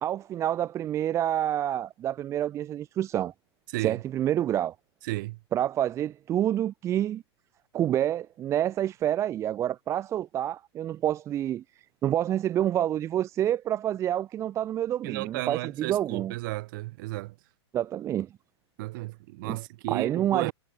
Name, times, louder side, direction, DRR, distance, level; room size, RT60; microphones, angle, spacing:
voice 1, 0.0-3.3 3.8-4.7 5.5-7.2 7.7-11.6 12.0-16.3 17.7-18.3 19.4-19.6 19.9-20.5, right 11 dB, 20° right, 0.8 m, -28 dB
voice 2, 3.7-4.0 5.0-5.4 15.0-17.4 18.8-20.5, right 21 dB, 45° right, 2.5 m, -33 dB
hypercardioid pair, 150°, 14 cm